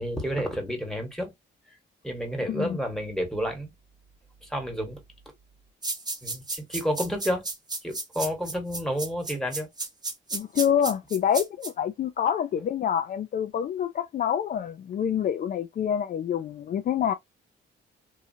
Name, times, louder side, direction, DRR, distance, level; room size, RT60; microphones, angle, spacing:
voice 1, 0.0-1.3 2.0-3.7 4.4-5.0 6.2-7.4 7.8-9.7, equal, ahead, 1.3 m, -30 dB
voice 2, 2.5-2.8 10.3-17.1, left 9 dB, 45° left, 0.4 m, -27 dB
sound 1, 5.8-11.7, right 3 dB, 20° right, 0.8 m, -33 dB
2.9 x 2.3 x 2.6 m
cardioid pair, 90°, 20 cm